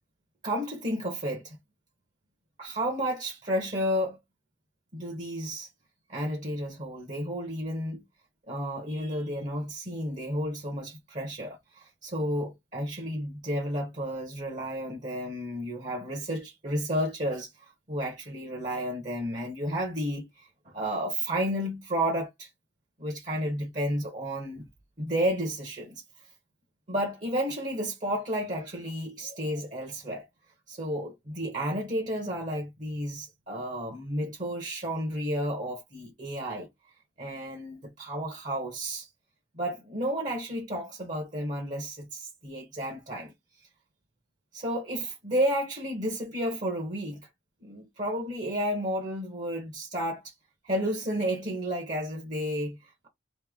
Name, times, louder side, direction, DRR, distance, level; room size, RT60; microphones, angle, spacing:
voice 1, 0.4-1.6 2.6-4.2 4.9-5.7 6.1-8.0 8.5-17.5 17.9-22.5 23.0-24.7 25.0-26.0 26.9-30.2 30.7-36.7 37.2-39.1 39.5-43.3 44.5-47.3 47.6-50.3 50.6-53.1, equal, 40° right, 1.1 m, -32 dB
3.2 x 2.8 x 3.6 m
head